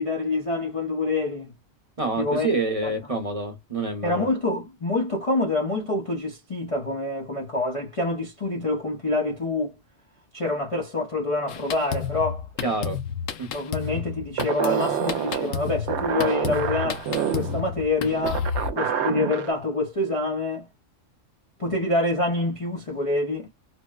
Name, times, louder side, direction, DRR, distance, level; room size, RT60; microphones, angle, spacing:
voice 1, 0.0-1.5 2.2-2.5 2.8-2.9 4.0-9.8 10.3-12.5 13.5-20.7 21.6-23.5, left 2 dB, 35° left, 0.6 m, -26 dB
voice 2, 2.0-4.3 12.6-13.0 13.4-13.5, right 3 dB, 30° right, 0.9 m, -27 dB
Drum kit, 11.5-18.7, left 7 dB, 85° left, 1.0 m, -32 dB
sound 1, 14.4-19.5, right 9 dB, 70° right, 0.8 m, -28 dB
4.3 x 2.0 x 2.2 m
omnidirectional pair, 1.3 m